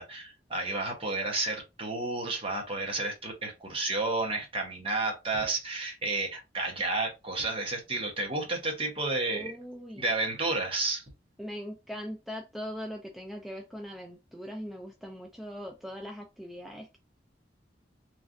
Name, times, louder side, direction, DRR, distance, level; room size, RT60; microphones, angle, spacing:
voice 1, 0.0-9.5 9.9-11.0, right 2 dB, 30° right, 1.0 m, -31 dB
voice 2, 9.3-10.1 11.4-17.0, equal, ahead, 0.3 m, -40 dB
3.1 x 2.4 x 2.5 m
head